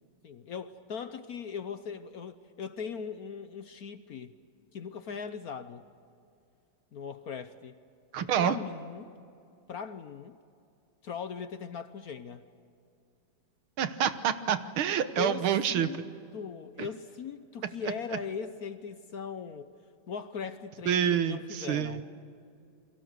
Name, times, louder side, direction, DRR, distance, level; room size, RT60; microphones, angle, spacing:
voice 1, 0.2-4.3 4.7-5.9 6.9-7.7 8.2-9.1 9.7-10.4 11.0-12.4 15.2-16.0 16.3-19.7 20.1-22.0, left 6 dB, 60° left, 11 dB, 1.0 m, -39 dB
voice 2, 8.1-8.6 13.8-15.9 16.8-16.9 20.9-22.0, right 9 dB, 90° right, 11 dB, 1.9 m, -27 dB
29.0 x 22.5 x 6.6 m, 2.5 s
omnidirectional pair, 2.3 m